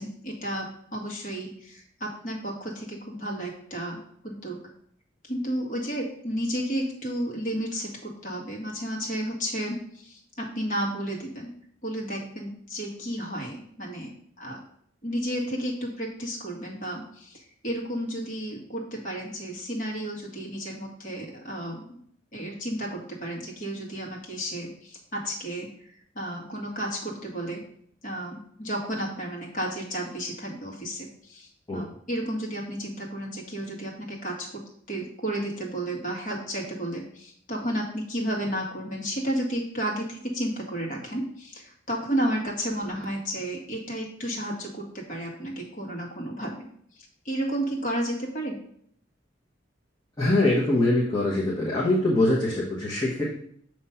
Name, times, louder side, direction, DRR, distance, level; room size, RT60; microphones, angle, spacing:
voice 1, 0.0-4.6 5.2-11.5 11.8-14.1 14.4-14.6 15.0-22.0 22.3-25.7 26.2-27.6 28.0-34.6 34.9-46.7 46.9-48.6, right 1 dB, 45° left, -2 dB, 1.8 m, -32 dB
voice 2, 50.2-53.3, left 2 dB, 20° left, -6 dB, 1.2 m, -23 dB
7.1 x 3.1 x 5.6 m, 0.65 s
head